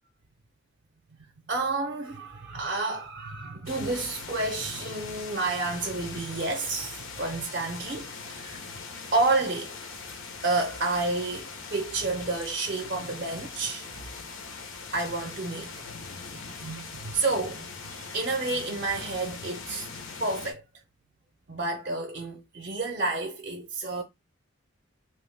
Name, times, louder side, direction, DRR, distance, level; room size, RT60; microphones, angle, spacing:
voice 1, 1.5-8.6 9.1-9.8 10.3-14.0 14.9-15.9 16.3-19.9 20.2-20.6 21.5-24.0, right 3 dB, 45° right, 0.5 m, -30 dB
sound 1, 3.7-20.5, left 4 dB, 85° left, 0.7 m, -41 dB
2.9 x 2.0 x 3.2 m
head